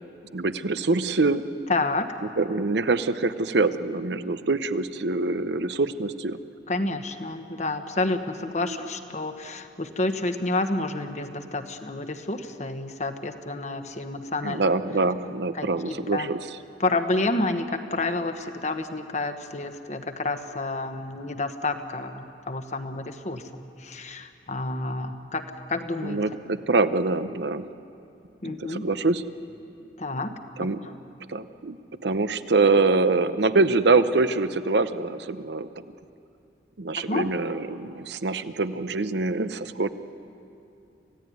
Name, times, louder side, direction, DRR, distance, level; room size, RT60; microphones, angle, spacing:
voice 1, 0.3-1.4 2.4-6.4 8.6-8.8 14.4-16.6 26.0-27.7 28.4-29.2 30.6-30.8 31.3-31.8 32.0-35.8 36.8-39.9, right 3 dB, 70° right, 12 dB, 0.8 m, -24 dB
voice 2, 1.7-2.1 6.7-14.6 15.5-16.3 16.8-26.2 28.4-28.8 30.0-30.3 30.6-31.0 36.9-37.4, left 2 dB, 40° left, 7 dB, 1.3 m, -29 dB
27.5 x 16.5 x 9.4 m, 2.7 s
head